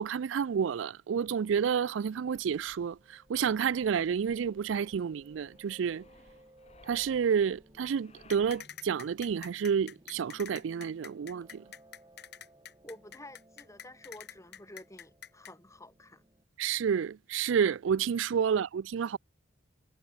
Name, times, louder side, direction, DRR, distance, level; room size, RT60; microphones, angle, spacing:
voice 1, 0.0-6.0 6.9-11.6 16.6-19.2, right 7 dB, 80° right, 0.4 m, -30 dB
Piano, 2.0-16.4, right 1 dB, 20° right, 3.9 m, -61 dB
sound 1, 2.3-8.7, left 2 dB, 35° left, 4.9 m, -61 dB
sound 2, 8.3-15.5, left 9 dB, 55° left, 4.7 m, -46 dB
voice 2, 12.8-16.2 18.5-18.6, left 1 dB, 15° left, 5.7 m, -50 dB
head